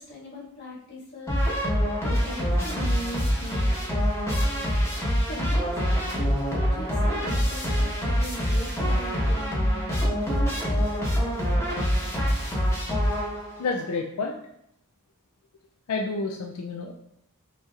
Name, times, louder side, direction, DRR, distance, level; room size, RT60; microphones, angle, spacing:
voice 1, 0.0-1.4 2.0-3.9 5.2-10.0, left 1 dB, 50° left, -7 dB, 1.6 m, -40 dB
sound 1, 1.3-13.7, equal, 15° left, 1.1 m, -25 dB
voice 2, 13.6-14.4 15.9-16.9, left 3 dB, 90° left, 2 dB, 0.4 m, -29 dB
5.9 x 2.8 x 2.4 m, 0.76 s
head